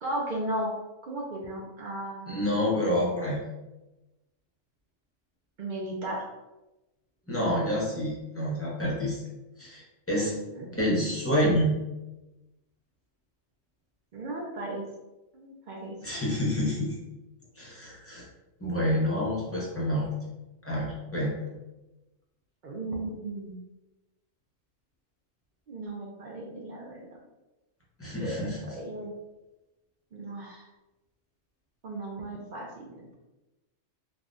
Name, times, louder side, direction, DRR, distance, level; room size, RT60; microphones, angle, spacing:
voice 1, 0.0-0.7 1.0-2.4 5.6-6.3 10.5-10.8 14.1-14.9 15.3-16.0 22.6-23.6 25.7-27.2 28.2-28.4 28.7-29.1 30.1-30.7 31.8-33.1, right 1 dB, 65° right, -2 dB, 0.5 m, -35 dB
voice 2, 2.3-3.4 7.3-9.2 9.6-10.3 10.8-11.8 16.0-17.0 17.6-18.3 18.6-20.1 20.6-21.3 28.0-28.7, equal, 15° left, -6 dB, 0.5 m, -28 dB
3.3 x 2.2 x 2.5 m, 1.0 s
omnidirectional pair, 1.3 m